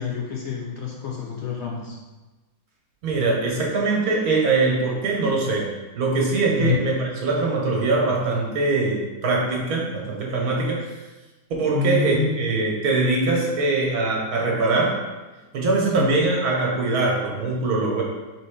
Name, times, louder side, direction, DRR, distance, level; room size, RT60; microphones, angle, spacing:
voice 1, 0.0-2.0 6.6-6.8 11.7-12.4 16.0-16.3, left 7 dB, 65° left, -2 dB, 0.7 m, -27 dB
voice 2, 3.0-5.7 5.9-10.9 11.6-15.0 15.5-18.0, right 3 dB, 75° right, -2 dB, 1.3 m, -22 dB
3.7 x 3.6 x 3.5 m, 1.2 s
omnidirectional pair, 1.6 m